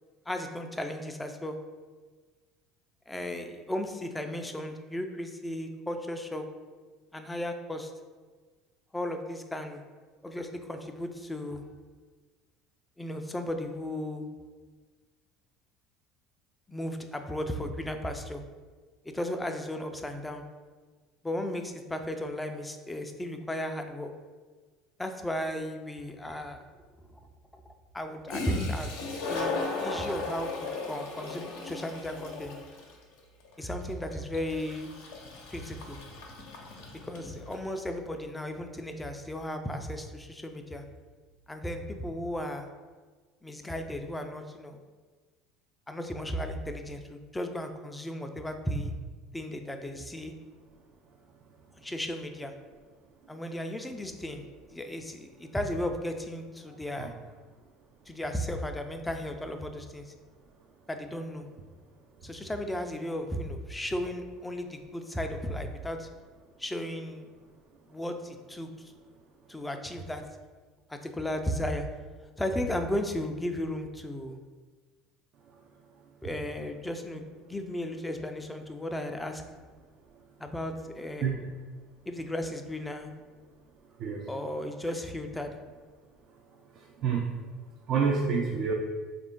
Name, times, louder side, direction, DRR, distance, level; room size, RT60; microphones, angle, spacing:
voice 1, 0.3-1.6 3.1-6.4 7.1-7.9 8.9-9.8 10.2-11.6 13.0-14.3 16.7-18.4 19.0-20.4 21.2-24.1 25.0-26.6 27.5-27.6 27.9-29.0 29.2-32.5 33.6-34.9 35.5-36.0 37.1-40.8 41.5-42.7 43.4-44.8 45.9-48.9 49.3-50.3 51.8-52.5 53.3-57.1 58.1-60.1 60.9-61.5 62.2-66.1 66.6-67.3 67.9-68.9 69.5-70.2 70.9-71.9 72.4-74.4 76.2-79.4 80.4-81.5 82.1-83.1 84.3-85.6, left 1 dB, 10° left, 5 dB, 0.4 m, -35 dB
Toilet flush, 26.3-26.4 28.0-28.1 28.3-37.7, left 3 dB, 80° left, 0.7 m, -37 dB
voice 2, 87.9-88.7, right 6 dB, 55° right, 0 dB, 0.4 m, -27 dB
3.6 x 2.5 x 3.6 m, 1.4 s
hypercardioid pair, 85°, 0 cm